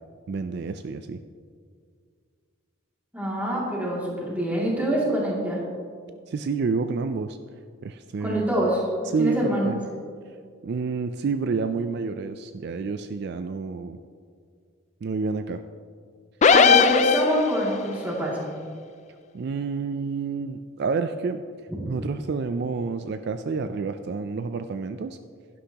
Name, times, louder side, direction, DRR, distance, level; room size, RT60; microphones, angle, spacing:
voice 1, 0.3-1.2 6.3-7.4 7.8-8.5 9.1-9.8 10.6-14.0 15.0-15.6 19.3-21.4 21.8-25.2, right 4 dB, 55° right, 9 dB, 0.3 m, -29 dB
voice 2, 3.1-5.6 8.2-8.8 9.2-9.8 16.5-18.4 21.7-22.1, equal, 10° right, -5 dB, 2.4 m, -25 dB
sound 1, 16.4-17.8, left 5 dB, 35° left, 0.3 m, -17 dB
11.5 x 11.5 x 2.9 m, 2.1 s
head